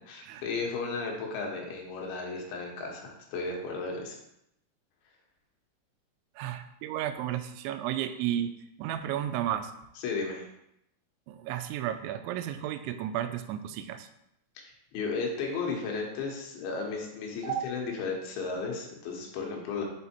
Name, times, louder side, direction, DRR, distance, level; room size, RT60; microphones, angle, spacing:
voice 1, 0.1-4.2 10.0-10.4 14.9-19.8, left 4 dB, 80° left, 0 dB, 3.4 m, -34 dB
voice 2, 6.4-8.5 8.8-9.7 11.3-14.1 17.4-17.7, right 11 dB, 85° right, 9 dB, 2.9 m, -33 dB
7.4 x 4.1 x 4.4 m, 0.80 s
omnidirectional pair, 5.2 m